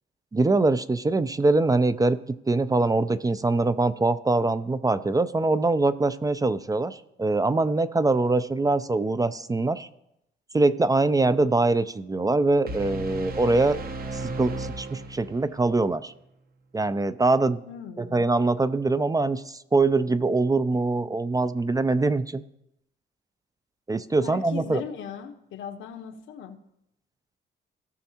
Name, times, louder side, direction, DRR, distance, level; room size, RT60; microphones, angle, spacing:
voice 1, 0.3-9.9 10.5-13.8 14.1-16.1 16.7-17.6 18.0-22.4 23.9-24.8, right 3 dB, 20° right, 13 dB, 0.4 m, -23 dB
sound 1, 12.7-15.6, right 2 dB, 50° right, 1.0 m, -35 dB
voice 2, 17.7-18.2 24.2-26.6, left 7 dB, 80° left, 7 dB, 1.1 m, -38 dB
17.0 x 6.0 x 2.9 m, 0.81 s
cardioid pair, 90°, 20 cm